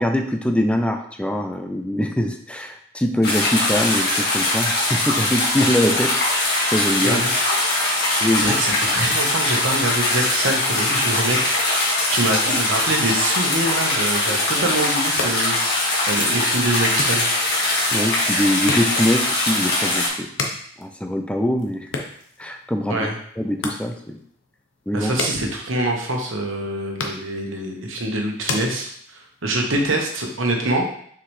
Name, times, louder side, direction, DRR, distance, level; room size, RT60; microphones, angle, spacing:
voice 1, 0.0-7.2 8.2-8.6 17.9-20.3 20.8-21.9 22.4-23.1 23.4-24.2 24.9-25.1, left 1 dB, 5° left, 5 dB, 0.5 m, -23 dB
sound 1, 3.2-20.1, left 2 dB, 55° left, 1.8 m, -21 dB
voice 2, 8.0-17.2 22.9-23.1 24.9-30.9, right 1 dB, 80° right, 2 dB, 1.2 m, -25 dB
sound 2, 14.9-29.4, left 3 dB, 70° left, 0.9 m, -35 dB
6.1 x 4.9 x 3.3 m, 0.64 s
head